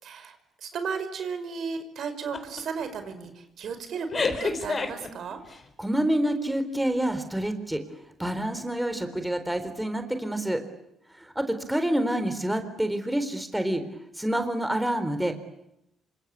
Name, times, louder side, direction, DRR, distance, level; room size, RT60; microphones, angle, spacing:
voice 1, 0.0-5.4 10.6-10.7, right 5 dB, 65° right, 9 dB, 5.4 m, -35 dB
sound 1, 2.3-2.6 3.0-3.3 4.1-5.6, left 4 dB, 35° left, 4.4 m, -28 dB
voice 2, 5.8-7.8 8.2-10.6 11.1-13.8 14.2-15.3, right 1 dB, 5° right, 8 dB, 3.9 m, -27 dB
27.5 x 25.5 x 8.4 m, 0.83 s
cardioid pair, 90°, 0 cm